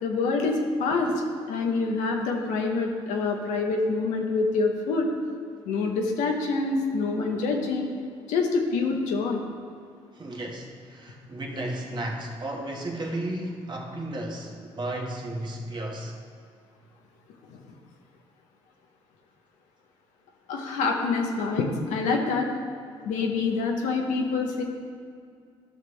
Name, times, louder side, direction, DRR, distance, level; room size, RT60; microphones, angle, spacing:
voice 1, 0.0-5.1 5.6-7.9 8.3-9.4 17.5-17.6 20.5-22.5 23.0-24.6, left 4 dB, 80° left, 2 dB, 1.1 m, -26 dB
voice 2, 10.1-16.1, right 1 dB, 40° right, 0 dB, 1.6 m, -34 dB
12.0 x 6.0 x 3.3 m, 2.3 s
supercardioid pair, 60°, 12 cm